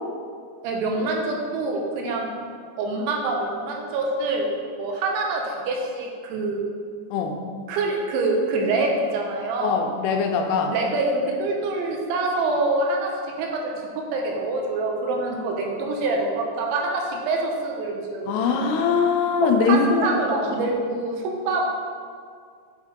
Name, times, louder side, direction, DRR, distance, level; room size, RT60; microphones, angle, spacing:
voice 1, 0.6-2.3 2.8-4.5 4.8-6.6 7.7-9.8 10.7-13.1 13.4-18.7 19.4-21.6, right 2 dB, 85° right, 0 dB, 3.2 m, -25 dB
voice 2, 9.6-10.7 18.3-20.1, left 5 dB, 85° left, 3 dB, 2.5 m, -21 dB
7.3 x 5.1 x 3.6 m, 2.2 s
omnidirectional pair, 5.3 m